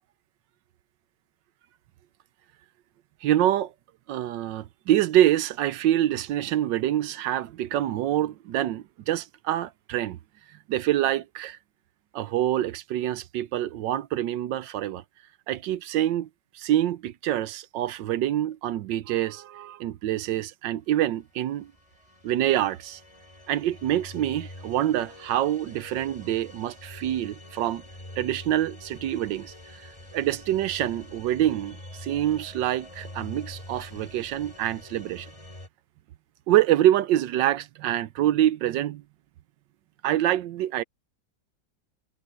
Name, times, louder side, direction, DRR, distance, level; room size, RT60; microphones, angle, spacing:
voice 1, 3.2-3.7 4.1-10.2 10.7-11.6 12.1-15.0 15.5-16.3 16.5-21.7 22.2-23.0 23.5-27.8 28.2-35.3 36.5-39.0 40.0-40.8, right 12 dB, 80° right, 1.3 m, -26 dB
sound 1, 21.3-35.7, left 1 dB, 20° left, 3.1 m, -45 dB
omnidirectional pair, 2.0 m